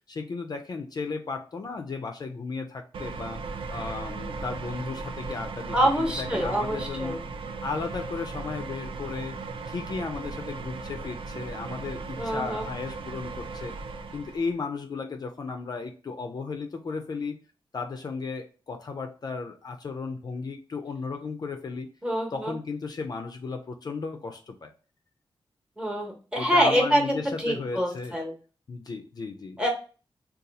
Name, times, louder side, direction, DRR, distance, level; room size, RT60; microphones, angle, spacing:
voice 1, 0.1-7.2 7.6-9.4 9.7-13.8 14.1-17.4 17.7-21.9 22.3-24.7 26.4-28.2 28.7-29.6, left 4 dB, 45° left, 4 dB, 0.4 m, -35 dB
sound 1, 2.9-14.5, right 4 dB, 75° right, 0.4 m, -37 dB
voice 2, 5.7-7.2 12.2-12.7 22.0-22.5 25.8-28.3 29.6-29.7, equal, 10° right, 1 dB, 0.9 m, -25 dB
2.7 x 2.3 x 3.9 m, 0.37 s
wide cardioid pair, 125°, 9 cm